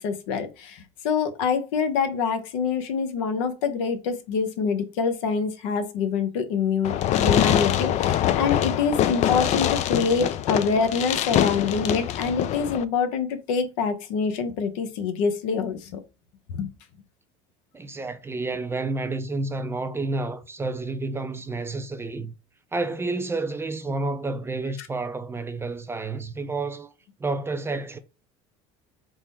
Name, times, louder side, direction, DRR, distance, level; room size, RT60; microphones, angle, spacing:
voice 1, 0.0-16.0 16.5-16.7, left 5 dB, 80° left, 0.8 m, -26 dB
Fireworks, 6.8-12.8, left 11 dB, 45° left, 0.4 m, -24 dB
voice 2, 17.7-22.3 22.7-26.9 27.2-28.0, right 3 dB, 15° right, 0.4 m, -30 dB
3.6 x 2.1 x 4.2 m
supercardioid pair, 105°, 16 cm